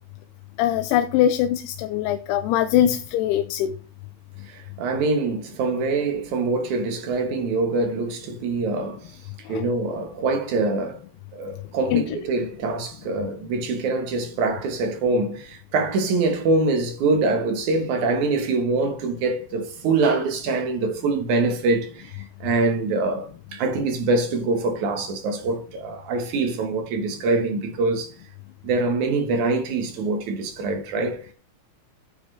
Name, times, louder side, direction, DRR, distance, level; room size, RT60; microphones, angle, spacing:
voice 1, 0.6-3.8 9.5-9.7 11.9-12.0, left 11 dB, 90° left, 2.7 m, -22 dB
voice 2, 4.5-9.0 9.5-11.0 11.3-28.1 28.6-31.2, right 3 dB, 60° right, 2.5 m, -24 dB
9.5 x 9.1 x 3.4 m
omnidirectional pair, 4.5 m